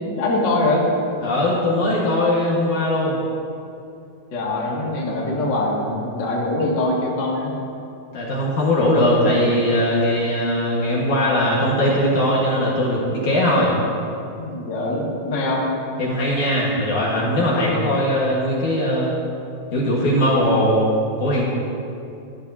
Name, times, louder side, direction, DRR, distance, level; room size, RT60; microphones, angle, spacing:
voice 1, 0.1-0.9 4.3-7.5 14.3-15.6, left 2 dB, 35° left, -4 dB, 2.3 m, -23 dB
voice 2, 1.2-3.1 8.1-13.7 16.0-19.1 19.7-20.9 21.2-21.4, left 1 dB, 55° left, -5 dB, 2.8 m, -20 dB
19.0 x 14.5 x 2.9 m, 2.7 s
omnidirectional pair, 4.6 m